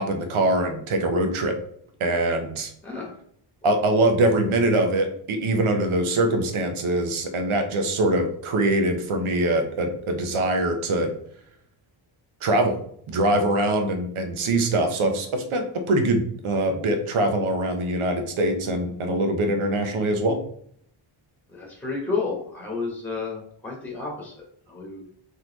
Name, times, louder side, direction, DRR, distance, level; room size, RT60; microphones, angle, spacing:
voice 1, 0.0-1.6 2.0-2.7 3.6-11.1 12.4-12.8 13.1-20.4, right 1 dB, 75° right, 5 dB, 1.0 m, -23 dB
voice 2, 21.5-25.1, left 4 dB, 5° left, -1 dB, 1.3 m, -31 dB
4.0 x 3.2 x 3.9 m, 0.65 s
wide cardioid pair, 130°, 49 cm